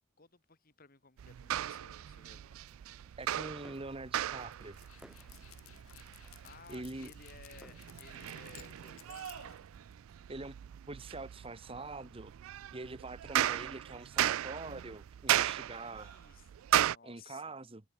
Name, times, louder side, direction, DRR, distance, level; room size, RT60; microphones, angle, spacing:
voice 1, 0.2-2.5 6.4-9.6 15.8-17.7, left 4 dB, 45° left, 2.0 m, -58 dB
sound 1, 1.2-17.0, right 12 dB, 75° right, 0.3 m, -36 dB
sound 2, 2.2-8.6, equal, 5° right, 2.4 m, -63 dB
voice 2, 3.2-4.8 6.7-7.1 10.3-10.6 10.9-12.3 12.7-16.1 17.0-17.8, right 2 dB, 25° right, 1.2 m, -44 dB
Dog, 4.4-10.2, left 10 dB, 85° left, 1.3 m, -57 dB
head